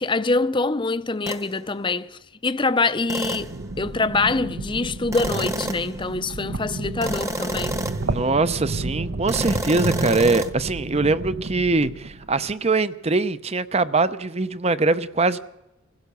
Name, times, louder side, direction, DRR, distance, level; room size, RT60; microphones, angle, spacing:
voice 1, 0.0-7.8, left 3 dB, 25° left, 0.6 m, -25 dB
sound 1, 1.3-1.5 3.1-3.6 5.1-6.0 7.0-8.1 9.3-10.5, right 1 dB, 15° right, 1.1 m, -29 dB
sound 2, 3.2-12.4, right 2 dB, 60° right, 1.0 m, -31 dB
voice 2, 8.0-15.4, right 3 dB, 30° right, 0.7 m, -22 dB
25.5 x 16.5 x 6.9 m
head